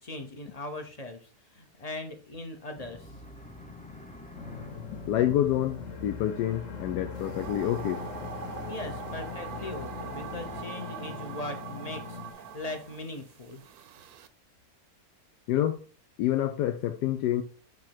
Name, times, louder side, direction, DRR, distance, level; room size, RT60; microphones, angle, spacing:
voice 1, 0.0-3.1 8.7-13.6, left 2 dB, 30° left, 0.7 m, -40 dB
sound 1, 2.8-10.6, left 3 dB, 10° left, 0.4 m, -46 dB
sound 2, 4.4-12.3, left 5 dB, 55° left, 1.3 m, -41 dB
voice 2, 4.9-8.0 15.5-15.8 16.2-17.4, left 12 dB, 85° left, 1.2 m, -27 dB
sound 3, 7.1-14.3, right 7 dB, 70° right, 1.1 m, -42 dB
7.6 x 3.0 x 5.9 m
omnidirectional pair, 1.8 m